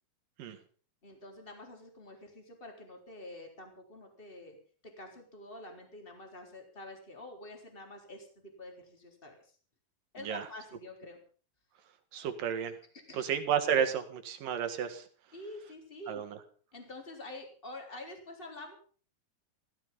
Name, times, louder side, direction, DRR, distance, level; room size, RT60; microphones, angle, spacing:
voice 1, 1.0-4.6 4.8-9.5 10.1-11.2 13.1-13.3 15.3-16.2 16.7-18.8, left 2 dB, 15° left, 3 dB, 3.7 m, -47 dB
voice 2, 12.1-12.7 13.1-15.1 16.1-16.4, right 8 dB, 75° right, 8 dB, 3.4 m, -31 dB
16.0 x 15.5 x 5.4 m, 0.43 s
omnidirectional pair, 3.9 m